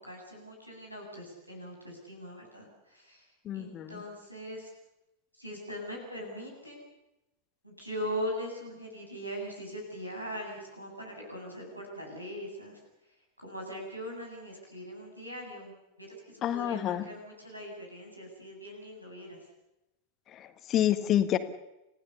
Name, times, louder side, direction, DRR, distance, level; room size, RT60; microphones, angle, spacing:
voice 1, 0.0-4.7 5.4-6.8 7.6-12.8 13.1-15.7 16.0-19.4, equal, 90° right, 0 dB, 8.0 m, -41 dB
voice 2, 3.4-4.0 16.4-17.0 20.3-21.4, left 11 dB, 30° left, 10 dB, 1.6 m, -28 dB
29.0 x 16.0 x 7.0 m, 0.92 s
figure-of-eight pair, 90°, 0 cm